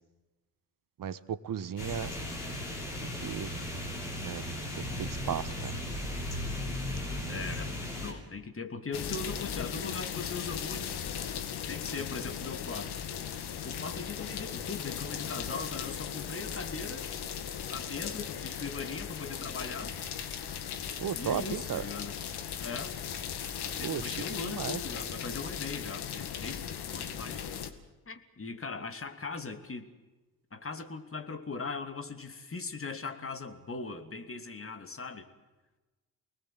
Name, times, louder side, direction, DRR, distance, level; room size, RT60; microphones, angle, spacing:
voice 1, 1.0-2.1 3.2-3.5 4.2-4.4 4.8-5.7 21.0-21.8 23.8-24.2 24.4-24.8, right 9 dB, 45° right, 16 dB, 1.4 m, -35 dB
sound 1, 1.8-8.1, left 1 dB, 90° left, 3.3 m, -36 dB
voice 2, 7.3-7.7 8.0-11.0 11.7-13.0 13.6-17.1 17.7-19.9 21.1-22.2 22.5-23.0 23.6-27.5 28.1-29.9 30.5-35.3, left 4 dB, 30° left, 6 dB, 2.9 m, -40 dB
sound 2, 8.9-27.7, left 8 dB, 60° left, 2.1 m, -37 dB
29.5 x 19.5 x 7.7 m, 1.1 s
figure-of-eight pair, 40°, 45 cm